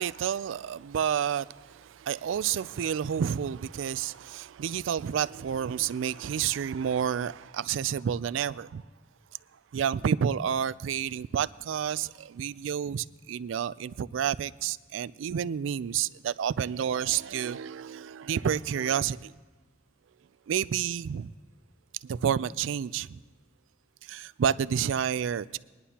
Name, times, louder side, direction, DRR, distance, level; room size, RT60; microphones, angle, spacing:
voice 1, 0.0-8.8 9.7-19.3 20.5-21.3 22.0-23.2 24.0-25.6, right 8 dB, 90° right, 0.3 m, -30 dB
20.5 x 11.0 x 2.8 m
head